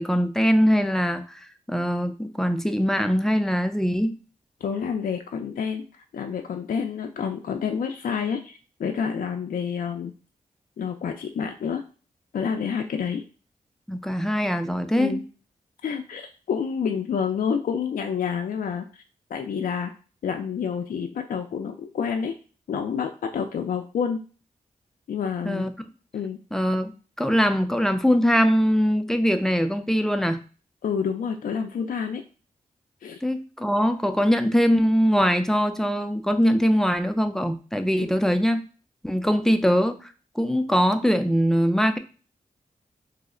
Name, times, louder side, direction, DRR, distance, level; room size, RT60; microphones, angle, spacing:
voice 1, 0.0-1.4 1.7-4.2 13.9-15.2 25.4-25.7 26.5-26.9 27.2-30.4 33.2-38.6 39.0-40.1 40.4-42.0, equal, 5° left, 7 dB, 0.4 m, -22 dB
voice 2, 4.6-5.8 6.1-10.1 10.8-11.8 12.3-13.2 15.0-15.2 15.8-18.9 19.3-19.9 20.2-22.3 22.7-24.2 25.1-25.7 26.1-26.4 30.8-32.2 33.0-33.2, left 6 dB, 70° left, 4 dB, 0.4 m, -28 dB
3.1 x 2.0 x 3.6 m, 0.36 s
cardioid pair, 60°, 15 cm